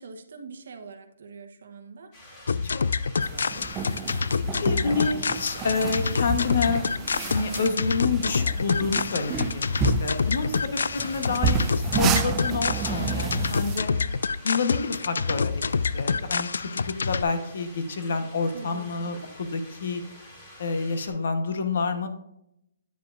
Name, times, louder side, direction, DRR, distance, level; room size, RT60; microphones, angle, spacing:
voice 1, 0.0-2.1 10.3-10.6 18.5-19.2, right 5 dB, 55° right, 7 dB, 1.0 m, -43 dB
sound 1, 2.1-21.1, left 1 dB, 20° left, 2.2 m, -49 dB
sound 2, 2.5-17.2, left 5 dB, 80° left, 0.3 m, -27 dB
voice 2, 3.1-3.6 4.3-13.9 14.4-16.7 17.1-20.0 20.6-22.1, left 4 dB, 50° left, 8 dB, 1.0 m, -29 dB
sound 3, 3.2-13.8, right 5 dB, 10° right, 0.4 m, -30 dB
9.3 x 7.4 x 2.5 m, 0.80 s
hypercardioid pair, 175°, 0 cm